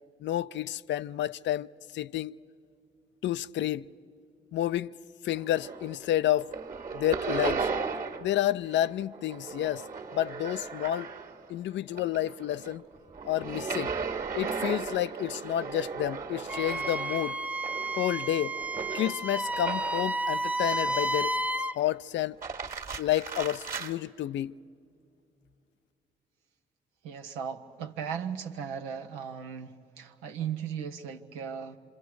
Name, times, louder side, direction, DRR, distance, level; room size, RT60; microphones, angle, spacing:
voice 1, 0.2-1.7 1.9-2.4 3.2-3.9 4.5-4.9 5.2-6.5 6.9-7.7 8.2-9.8 10.1-11.1 11.5-12.8 13.2-13.9 14.3-17.4 17.9-18.5 18.9-21.3 21.8-22.4 23.0-24.5, left 12 dB, 65° left, 0.4 m, -30 dB
sound 1, 5.3-6.1 6.3-8.4 8.6-11.5 11.9-20.2 20.7-21.4 22.2-23.9, right 5 dB, 40° right, 1.7 m, -36 dB
Wind instrument woodwind instrument, 16.5-21.8, right 1 dB, 5° right, 0.5 m, -31 dB
voice 2, 27.0-31.8, right 7 dB, 90° right, 0.8 m, -37 dB
26.5 x 26.0 x 4.7 m
hypercardioid pair, 40°, 20 cm